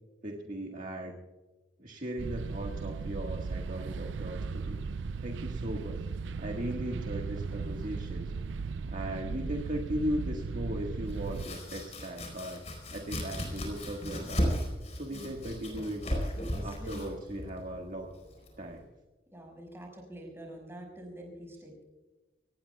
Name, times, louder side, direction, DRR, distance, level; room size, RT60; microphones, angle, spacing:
voice 1, 0.2-1.2 1.8-4.8 5.2-6.0 6.4-8.3 8.9-12.6 12.9-14.5 14.9-16.0 16.6-18.1 18.6-18.9, right 1 dB, 45° right, 0 dB, 1.6 m, -37 dB
sound 1, 2.2-11.5, right 4 dB, 75° right, 0.4 m, -36 dB
Domestic sounds home sounds, 11.1-18.8, equal, 35° left, 4.4 m, -36 dB
voice 2, 16.5-17.0 19.3-21.8, equal, 15° right, 1 dB, 5.5 m, -46 dB
25.0 x 18.5 x 2.3 m, 1.2 s
head